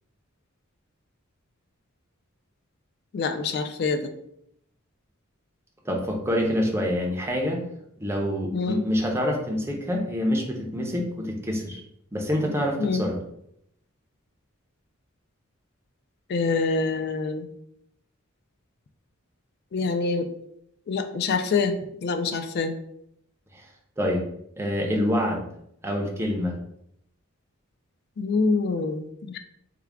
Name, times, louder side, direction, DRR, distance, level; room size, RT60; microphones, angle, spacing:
voice 1, 3.1-4.0 8.5-8.8 12.8-13.1 16.3-17.5 19.7-20.3 20.9-22.7 28.2-29.4, left 4 dB, 50° left, 8 dB, 0.3 m, -25 dB
voice 2, 5.8-7.6 8.0-11.8 12.1-13.2 23.5-23.6 24.0-24.2 24.6-25.4 25.8-26.6, equal, 10° right, 0 dB, 0.6 m, -26 dB
3.6 x 2.2 x 3.4 m, 0.74 s
head